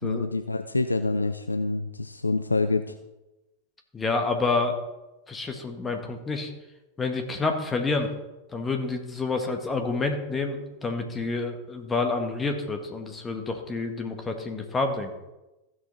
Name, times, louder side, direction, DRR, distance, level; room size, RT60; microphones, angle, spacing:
voice 1, 0.0-2.9, left 3 dB, 80° left, 9 dB, 0.4 m, -27 dB
voice 2, 3.9-4.8 5.3-6.5 7.0-8.1 8.5-15.1, left 3 dB, 15° left, 5 dB, 1.7 m, -28 dB
15.0 x 6.4 x 4.1 m, 1.0 s
figure-of-eight pair, 90°, 0 cm